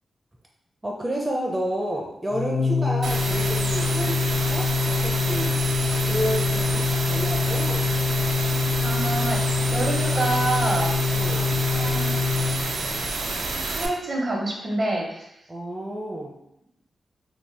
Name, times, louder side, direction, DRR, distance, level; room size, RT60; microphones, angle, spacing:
voice 1, 0.8-5.5 6.1-7.9 11.1-11.5 15.5-16.3, equal, 20° right, -1 dB, 0.5 m, -30 dB
Organ, 2.3-13.2, left 5 dB, 75° left, 0.5 m, -25 dB
sound 1, 3.0-13.9, right 3 dB, 75° right, 0.4 m, -29 dB
voice 2, 8.8-9.4 9.7-10.9 11.7-12.2 13.7-15.3, right 2 dB, 55° right, -1 dB, 0.8 m, -27 dB
2.8 x 2.0 x 3.2 m, 0.79 s
cardioid pair, 55°, 0 cm